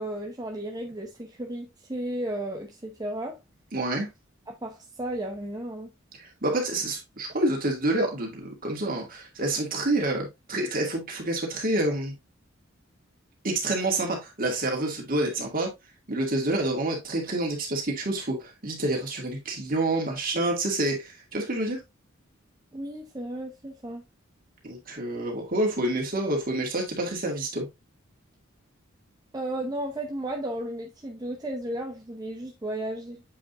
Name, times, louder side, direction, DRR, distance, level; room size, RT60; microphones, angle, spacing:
voice 1, 0.0-3.4 4.5-5.9 22.7-24.0 29.3-33.2, right 1 dB, 20° right, 0.7 m, -34 dB
voice 2, 3.7-4.1 6.2-12.1 13.4-15.7 16.1-21.8 24.6-27.7, right 2 dB, 45° right, 2.3 m, -28 dB
7.8 x 5.0 x 2.5 m
head